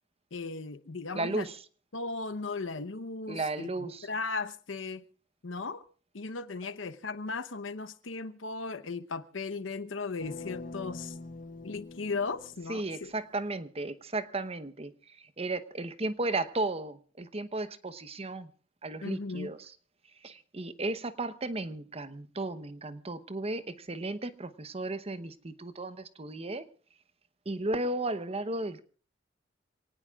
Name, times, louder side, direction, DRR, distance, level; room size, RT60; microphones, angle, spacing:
voice 1, 0.3-1.5 1.9-5.0 5.4-5.8 6.1-11.2 11.6-13.1 19.0-19.5, left 4 dB, 90° left, 1.0 m, -37 dB
voice 2, 1.1-1.6 3.3-4.1 12.7-18.5 18.8-19.7 20.2-26.7 27.4-28.8, right 2 dB, 30° right, 0.9 m, -34 dB
sound 1, 10.2-13.2, left 3 dB, 45° left, 0.9 m, -44 dB
27.0 x 18.5 x 2.4 m
head